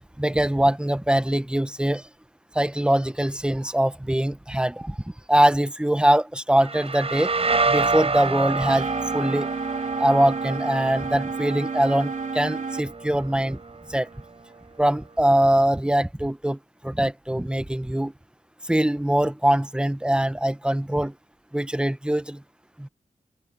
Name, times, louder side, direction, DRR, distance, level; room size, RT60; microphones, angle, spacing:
voice 1, 0.2-2.0 2.5-4.9 5.3-7.3 7.7-8.9 9.1-9.5 10.0-13.6 13.9-14.1 14.8-16.6 16.8-18.1 18.7-21.1 21.5-22.4 22.8-22.9, right 1 dB, 5° right, 0.9 m, -22 dB
sound 1, 6.6-14.2, right 4 dB, 45° right, 4.5 m, -28 dB
sound 2, 8.7-12.8, right 4 dB, 65° right, 2.6 m, -31 dB
open air
wide cardioid pair, 85°, 14 cm